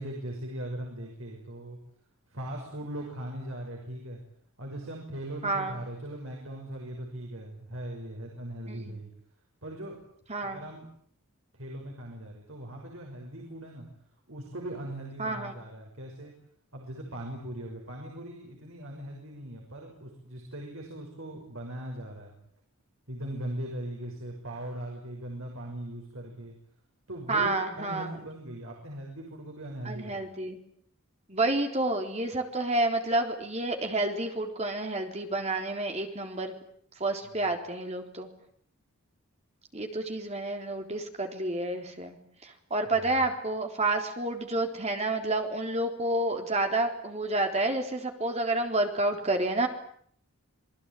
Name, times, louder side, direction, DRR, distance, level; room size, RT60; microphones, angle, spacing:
voice 1, 0.0-1.8 2.3-4.2 4.6-9.1 9.6-10.0 10.4-10.9 11.5-13.9 14.3-16.3 16.7-22.3 23.1-26.5 27.1-30.2 37.2-37.4 42.9-43.2, right 1 dB, 65° right, 1 dB, 6.3 m, -39 dB
voice 2, 5.4-5.8 8.7-9.0 10.3-10.6 15.2-15.5 27.3-28.1 29.8-30.6 31.3-36.5 37.0-38.3 39.7-49.7, right 2 dB, 30° right, 4 dB, 3.9 m, -29 dB
28.0 x 20.5 x 9.3 m, 0.64 s
head